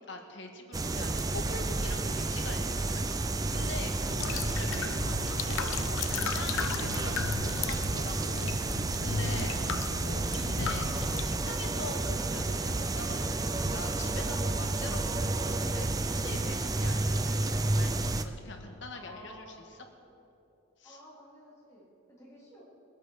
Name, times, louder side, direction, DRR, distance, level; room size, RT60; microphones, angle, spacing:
voice 1, 0.0-5.7 6.0-9.5 10.0-18.1 18.4-19.5 20.8-21.0, left 2 dB, 60° left, 3 dB, 1.7 m, -43 dB
sound 1, 0.7-18.2, right 2 dB, 15° right, 0.4 m, -31 dB
voice 2, 3.9-4.5 9.1-9.8 18.9-19.7 20.8-22.6, left 1 dB, 15° left, -6 dB, 3.2 m, -53 dB
sound 2, 4.1-11.2, left 6 dB, 75° left, 0.5 m, -36 dB
sound 3, 4.2-16.8, right 4 dB, 85° right, 0.4 m, -47 dB
21.0 x 8.3 x 6.4 m, 2.7 s
head